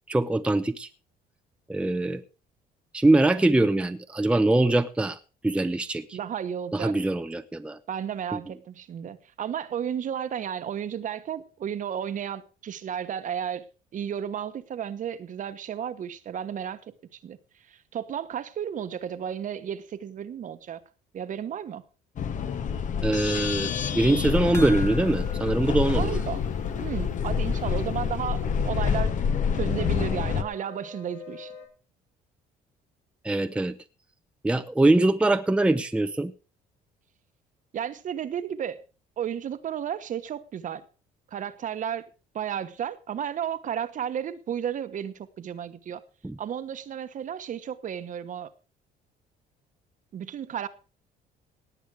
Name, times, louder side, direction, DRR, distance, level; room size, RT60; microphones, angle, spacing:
voice 1, 0.1-0.9 1.7-2.2 2.9-5.2 5.4-6.2 6.7-7.8 8.3-8.4 23.0-26.1 33.2-33.7 34.4-36.3 46.2-46.4, right 2 dB, 5° right, 0.7 m, -23 dB
voice 2, 6.1-7.0 7.9-13.7 13.9-16.8 17.2-17.4 17.7-20.8 21.1-21.8 25.9-26.4 26.8-29.2 29.5-31.5 37.7-38.8 39.2-40.8 41.3-42.1 42.3-46.0 46.4-48.5 50.1-50.7, right 9 dB, 50° right, 1.2 m, -33 dB
sound 1, 22.2-30.4, left 7 dB, 50° left, 1.2 m, -27 dB
sound 2, 23.6-31.7, left 5 dB, 75° left, 4.7 m, -43 dB
sound 3, 24.5-27.1 27.4-27.5 27.9-28.0, left 1 dB, 15° left, 1.6 m, -43 dB
18.0 x 8.1 x 4.8 m
cardioid pair, 110°, 17 cm